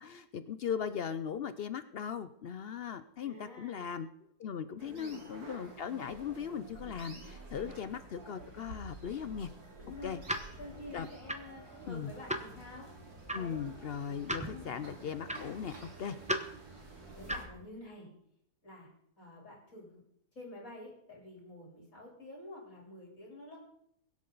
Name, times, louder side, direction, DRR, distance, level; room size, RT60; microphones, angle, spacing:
voice 1, 0.0-4.1 4.4-9.5 10.0-10.2 10.9-11.1 11.9-12.1 13.3-16.5, left 7 dB, 75° left, 12 dB, 0.5 m, -38 dB
voice 2, 3.2-3.9 4.8-5.2 9.8-10.2 10.6-12.9 13.3-13.6 14.4-14.8 17.2-18.1 18.6-18.9 19.2-20.0 20.3-23.6, left 2 dB, 50° left, -2 dB, 4.2 m, -49 dB
sound 1, 4.8-17.4, right 2 dB, 70° right, 3.0 m, -50 dB
sound 2, 9.9-17.6, right 1 dB, 5° right, 0.7 m, -41 dB
23.0 x 8.4 x 3.9 m, 0.71 s
omnidirectional pair, 1.7 m